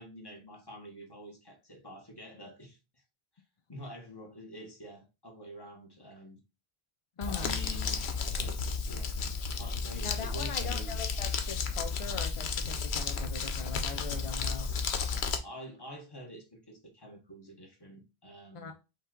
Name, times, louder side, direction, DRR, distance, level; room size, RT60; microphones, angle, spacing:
voice 1, 0.0-2.8 3.7-6.4 7.3-8.0 8.3-9.2 9.5-11.0 15.4-18.7, equal, 25° left, 1.2 m, -47 dB
Crumpling crinkling, 7.2-15.4, left 5 dB, 80° left, 1.0 m, -33 dB
voice 2, 7.2-7.6 10.0-14.7 18.5-18.7, left 5 dB, 55° left, 0.3 m, -41 dB
5.4 x 2.4 x 3.7 m
omnidirectional pair, 1.1 m